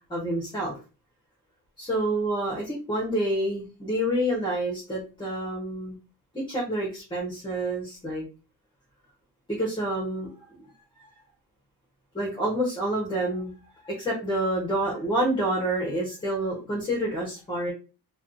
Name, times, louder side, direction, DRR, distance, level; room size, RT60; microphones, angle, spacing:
voice 1, 0.1-0.8 1.8-6.0 6.3-8.2 9.5-10.7 12.1-13.5 13.8-17.7, right 1 dB, 15° left, -3 dB, 0.7 m, -28 dB
2.3 x 2.3 x 2.6 m, 0.33 s
cardioid pair, 155°, 37 cm